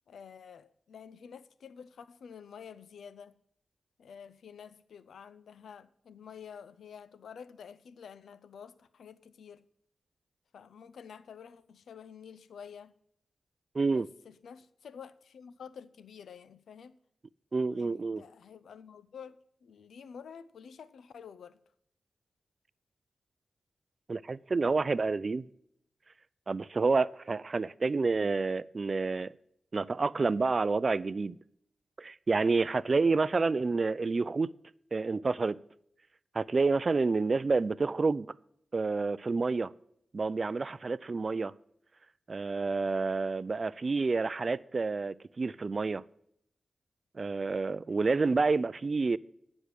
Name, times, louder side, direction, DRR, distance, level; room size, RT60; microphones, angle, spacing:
voice 1, 0.1-3.3 4.0-9.6 10.5-13.0 13.9-17.0 17.7-19.4 19.6-21.6, left 7 dB, 85° left, 0.5 m, -49 dB
voice 2, 13.7-14.1 17.5-18.2 24.1-25.4 26.5-29.3 29.7-31.3 32.0-34.5 34.9-35.6 36.3-38.3 38.7-39.7 40.1-41.5 42.3-46.0 47.2-49.2, right 4 dB, 50° right, 0.4 m, -29 dB
9.9 x 6.2 x 6.7 m
cardioid pair, 45°, 0 cm